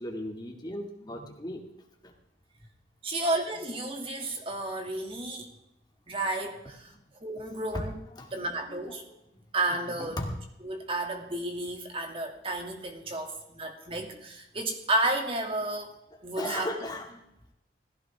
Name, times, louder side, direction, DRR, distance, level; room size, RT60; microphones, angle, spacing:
voice 1, 0.0-1.6 7.7-7.8 8.2-8.9 9.9-10.3 16.4-17.2, left 1 dB, 25° left, 2 dB, 2.3 m, -37 dB
voice 2, 3.0-5.5 6.1-6.9 7.2-8.0 8.3-9.0 9.5-10.2 10.6-15.9 16.2-16.7, right 2 dB, 30° right, 3 dB, 2.5 m, -32 dB
18.0 x 15.5 x 3.6 m, 0.83 s
head